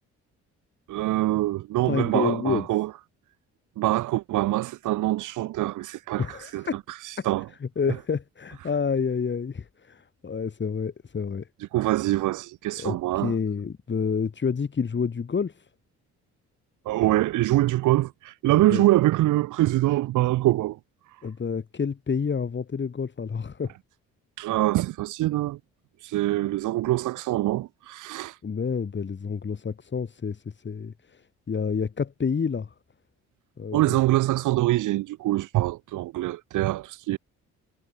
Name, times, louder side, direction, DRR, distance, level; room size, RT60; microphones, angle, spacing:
voice 1, 0.9-2.9 3.8-7.5 7.9-8.0 11.7-13.3 16.8-20.8 24.4-25.6 26.0-28.4 33.7-37.2, right 16 dB, 90° right, 1.8 m, -24 dB
voice 2, 1.9-2.7 6.2-6.8 7.2-7.3 7.8-11.5 12.8-15.5 18.7-18.8 21.2-23.7 28.4-30.9 31.5-32.7 33.6-34.0, left 6 dB, 40° left, 4.0 m, -28 dB
cardioid pair, 90°, 30 cm